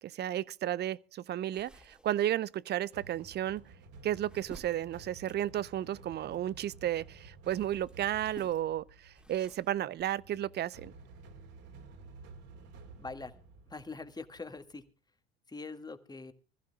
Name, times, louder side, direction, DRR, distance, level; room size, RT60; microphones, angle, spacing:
voice 1, 0.0-3.7 4.0-10.9, right 12 dB, 35° right, 0.6 m, -33 dB
sound 1, 1.5-6.7 7.2-9.7, right 1 dB, 5° right, 2.4 m, -57 dB
sound 2, 2.9-14.8, right 3 dB, 55° right, 3.6 m, -53 dB
voice 2, 13.0-13.3 13.7-14.8 15.5-16.3, left 3 dB, 15° left, 1.9 m, -43 dB
25.5 x 15.0 x 2.3 m
hypercardioid pair, 70°, 30 cm